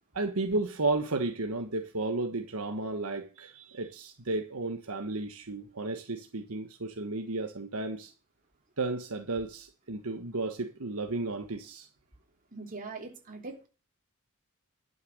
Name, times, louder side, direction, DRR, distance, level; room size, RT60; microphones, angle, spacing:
voice 1, 0.1-8.1 8.8-11.9, right 2 dB, 75° right, 1.4 m, -33 dB
voice 2, 12.5-13.7, right 3 dB, 40° right, 3.3 m, -41 dB
11.5 x 7.0 x 6.4 m
head